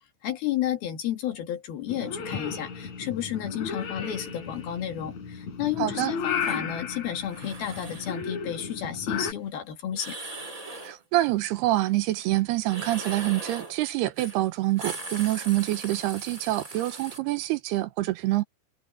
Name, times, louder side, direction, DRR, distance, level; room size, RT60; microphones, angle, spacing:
voice 1, 0.2-10.2, left 11 dB, 65° left, 3.7 m, -32 dB
Purr / Meow, 1.9-9.3, left 6 dB, 45° left, 4.1 m, -34 dB
voice 2, 5.8-6.1 10.8-18.4, right 17 dB, 80° right, 2.6 m, -26 dB
sound 1, 6.3-6.6 7.2-8.2 9.9-11.0 12.6-13.8 14.2-14.4 14.7-17.2, right 2 dB, 20° right, 5.1 m, -39 dB
omnidirectional pair, 5.1 m